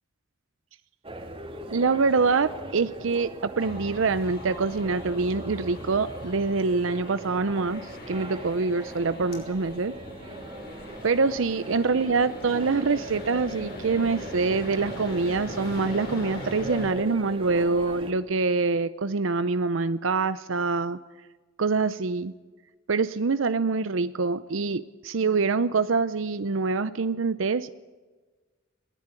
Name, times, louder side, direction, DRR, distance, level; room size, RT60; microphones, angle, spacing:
sound 1, 1.0-18.1, right 1 dB, 30° right, 2.8 m, -40 dB
voice 1, 1.7-9.9 11.0-21.0 21.6-22.3 22.9-27.7, right 4 dB, 70° right, 13 dB, 0.6 m, -25 dB
sound 2, 3.6-16.9, left 1 dB, 55° left, 5.9 m, -41 dB
21.5 x 17.5 x 9.7 m, 1.3 s
head